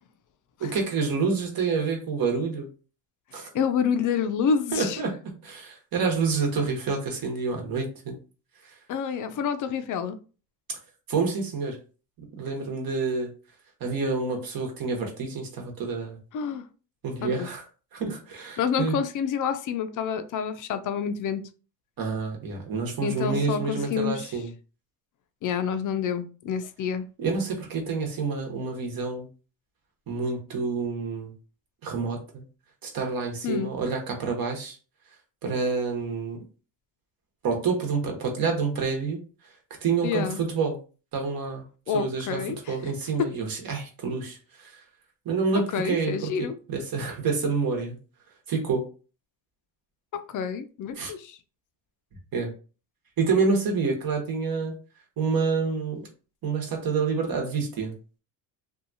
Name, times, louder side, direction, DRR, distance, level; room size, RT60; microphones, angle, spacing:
voice 1, 0.6-2.7 3.3-3.5 4.7-5.2 5.4-8.2 8.6-8.7 11.1-11.8 12.4-13.3 13.8-16.2 17.0-17.6 17.9-19.0 22.0-24.5 27.2-29.3 30.1-31.3 31.8-32.4 32.8-34.8 35.4-36.4 37.4-39.2 39.8-40.8 41.1-41.6 41.9-42.4 42.7-44.8 45.2-47.9 48.5-48.8 50.9-51.1 52.3-52.5 53.2-54.7 55.2-56.0 56.4-57.9, right 4 dB, 50° right, 1.2 m, -28 dB
voice 2, 3.5-5.0 8.9-10.2 16.3-16.6 17.2-17.5 18.6-21.5 23.0-24.3 25.4-27.0 33.4-33.7 40.0-40.4 41.9-42.7 45.7-46.5 50.1-51.4, left 7 dB, 45° left, 0.5 m, -28 dB
2.7 x 2.3 x 2.6 m
cardioid pair, 90°, 43 cm